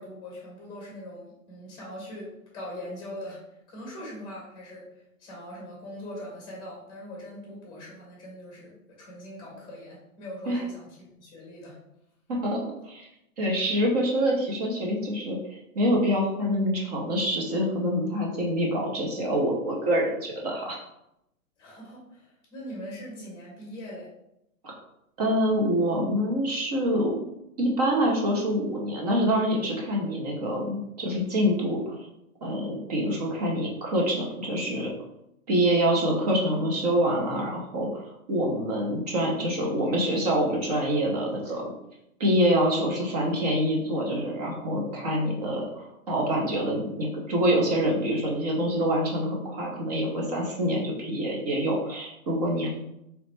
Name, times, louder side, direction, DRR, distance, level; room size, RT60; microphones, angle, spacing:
voice 1, 0.0-3.4 3.7-11.8 21.6-24.1, left 1 dB, 10° left, -3 dB, 1.1 m, -41 dB
voice 2, 12.3-13.1 13.4-15.4 15.7-20.8 24.6-24.7 25.2-27.1 27.6-31.9 32.4-34.9 35.5-38.0 38.3-41.7 42.2-52.7, equal, 30° right, -1 dB, 0.8 m, -26 dB
3.9 x 3.1 x 3.2 m, 0.82 s
hypercardioid pair, 165°, 42 cm